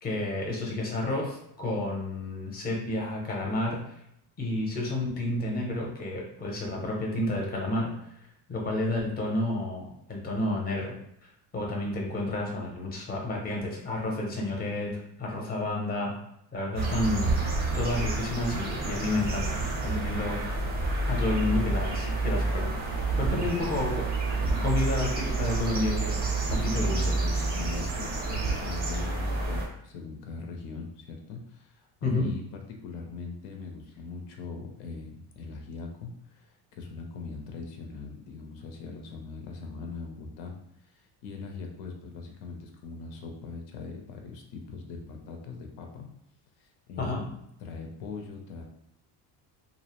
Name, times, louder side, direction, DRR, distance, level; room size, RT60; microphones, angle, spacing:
voice 1, 0.0-3.9 4.4-7.9 8.5-10.9 11.5-16.1 16.5-17.3 17.7-20.4 21.1-22.7 23.2-24.0 24.6-26.2 26.5-27.0 32.0-32.3 47.0-47.2, left 2 dB, 25° left, -2 dB, 0.6 m, -30 dB
sound 1, 16.8-29.7, right 3 dB, 25° right, 0.4 m, -29 dB
voice 2, 23.3-23.9 26.3-46.1 46.6-48.6, left 4 dB, 90° left, 2 dB, 0.6 m, -41 dB
2.6 x 2.0 x 2.8 m, 0.76 s
cardioid pair, 150°, 41 cm